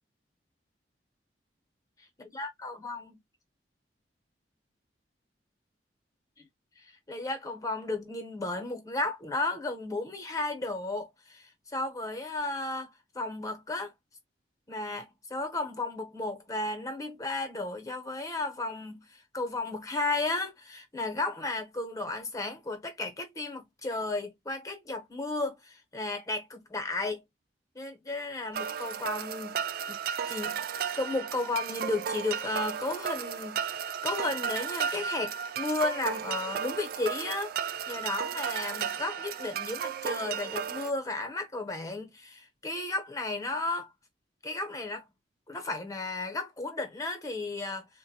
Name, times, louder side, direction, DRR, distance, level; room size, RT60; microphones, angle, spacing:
voice 1, 2.3-3.2 7.1-13.9 14.7-27.2 27.7-29.6 29.9-30.0 30.3-30.6 31.0-43.9 44.4-45.1 45.5-47.9, left 2 dB, 20° left, 0.9 m, -34 dB
sound 1, 28.5-40.9, right 7 dB, 55° right, 0.3 m, -34 dB
3.7 x 2.2 x 2.7 m
head